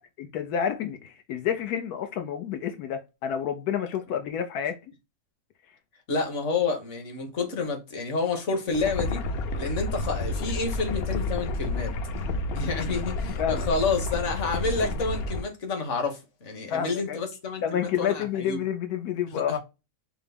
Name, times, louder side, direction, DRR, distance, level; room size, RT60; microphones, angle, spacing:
voice 1, 0.2-4.8 12.6-13.0 13.4-13.7 16.7-17.2 17.6-19.6, left 8 dB, 85° left, 1.1 m, -29 dB
voice 2, 6.1-9.2 9.5-12.0 12.5-18.6 19.3-19.6, left 4 dB, 55° left, 1.4 m, -29 dB
sound 1, 8.7-15.4, left 2 dB, 70° left, 0.5 m, -30 dB
5.7 x 2.0 x 3.3 m
omnidirectional pair, 1.6 m